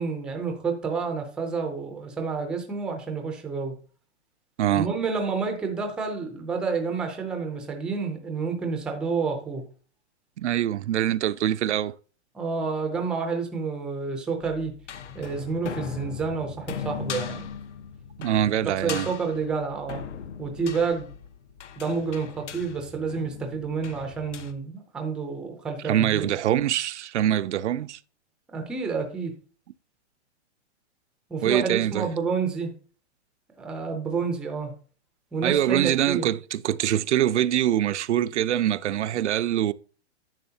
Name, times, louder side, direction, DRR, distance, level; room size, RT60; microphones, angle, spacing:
voice 1, 0.0-3.8 4.8-9.6 12.3-14.7 15.1-17.5 18.8-20.0 20.4-21.1 21.8-26.3 28.5-29.3 31.3-32.7 33.6-34.7 35.3-36.3, right 5 dB, ahead, 0.5 m, -29 dB
voice 2, 4.6-4.9 10.4-12.0 18.2-19.1 25.8-28.0 31.4-32.1 35.4-39.7, right 11 dB, 75° right, 0.6 m, -24 dB
sound 1, 14.4-24.5, left 7 dB, 80° left, 1.1 m, -39 dB
10.5 x 7.2 x 2.8 m
hypercardioid pair, 160°, 35 cm